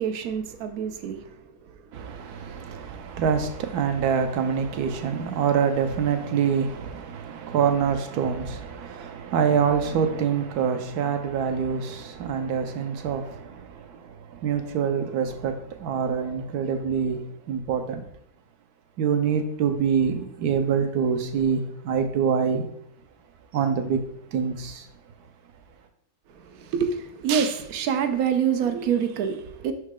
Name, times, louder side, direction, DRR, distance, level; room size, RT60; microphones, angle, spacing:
voice 1, 0.0-1.8 26.3-29.7, right 7 dB, 70° right, 1.2 m, -27 dB
voice 2, 1.9-18.0 19.0-22.7 23.5-24.0 24.3-24.9, right 7 dB, 90° right, 1.2 m, -25 dB
6.3 x 5.7 x 3.6 m
omnidirectional pair, 1.6 m